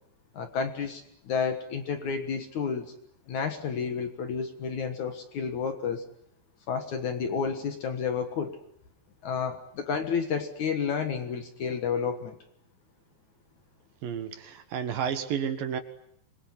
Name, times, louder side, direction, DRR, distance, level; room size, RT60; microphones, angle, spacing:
voice 1, 0.3-2.9 3.3-6.1 6.7-8.6 9.2-12.4, left 6 dB, 55° left, 7 dB, 2.5 m, -31 dB
voice 2, 14.0-15.8, right 8 dB, 65° right, 9 dB, 3.0 m, -31 dB
26.5 x 22.0 x 9.8 m, 0.71 s
omnidirectional pair, 4.7 m